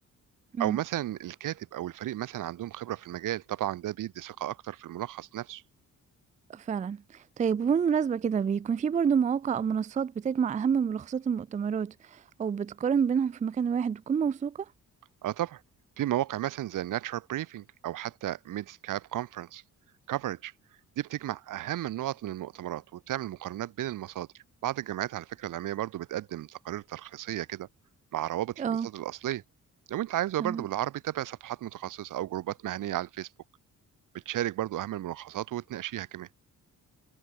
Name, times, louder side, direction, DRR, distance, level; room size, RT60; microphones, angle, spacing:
voice 1, 0.6-5.6 15.2-15.6 16.0-19.6 20.1-20.5 21.0-24.3 24.6-27.7 28.1-29.4 29.9-33.3 34.1-36.3, right 13 dB, 75° right, 1.5 m, -34 dB
voice 2, 6.5-14.7 28.6-28.9 30.4-30.6, right 7 dB, 25° right, 0.4 m, -28 dB
cardioid pair, 170°, 32 cm